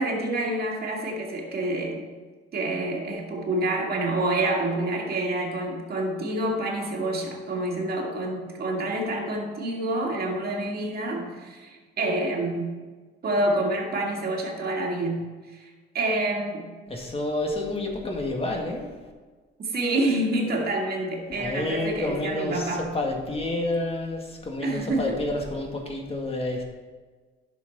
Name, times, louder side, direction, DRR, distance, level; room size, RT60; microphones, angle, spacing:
voice 1, 0.0-2.1 2.5-12.7 13.2-15.2 15.5-16.7 19.6-22.9 24.6-25.2, right 1 dB, 50° right, 0 dB, 2.1 m, -27 dB
voice 2, 16.9-18.9 21.3-26.6, left 2 dB, 30° left, 1 dB, 1.9 m, -29 dB
10.5 x 6.2 x 4.2 m, 1.4 s
cardioid pair, 90°, 20 cm